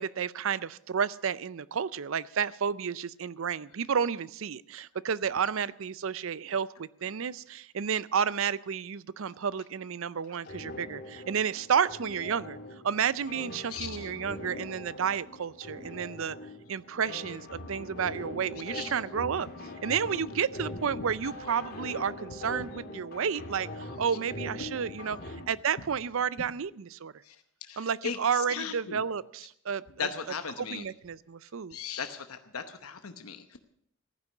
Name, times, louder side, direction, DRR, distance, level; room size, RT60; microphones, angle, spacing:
voice 1, 0.0-12.6 12.8-16.4 16.7-19.5 19.8-27.1 27.8-30.1 30.6-31.8, right 7 dB, 70° right, 19 dB, 0.5 m, -31 dB
sound 1, 10.5-25.4, left 2 dB, 45° left, 2.0 m, -42 dB
voice 2, 13.7-14.1 18.7-18.9 22.6-22.7 27.2-27.4 27.6-29.0 30.0-30.8 31.7-33.6, left 6 dB, 85° left, 8 dB, 0.9 m, -37 dB
15.0 x 9.9 x 7.1 m, 0.69 s
head